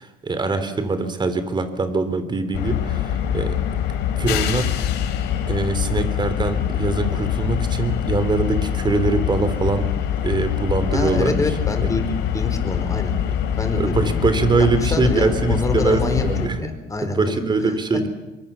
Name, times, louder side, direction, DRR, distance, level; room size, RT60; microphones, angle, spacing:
voice 1, 0.0-3.6 4.2-4.7 5.5-9.9 10.2-11.5 11.8-11.9 13.8-16.6 17.0-18.1, right 3 dB, 25° right, 10 dB, 3.6 m, -23 dB
sound 1, 2.5-16.5, left 9 dB, 85° left, 3.9 m, -24 dB
voice 2, 10.9-13.1 13.6-14.2 14.6-17.4 17.7-17.8, left 2 dB, 20° left, 8 dB, 4.3 m, -26 dB
26.5 x 24.5 x 7.2 m, 1.1 s
cardioid pair, 110°, 17 cm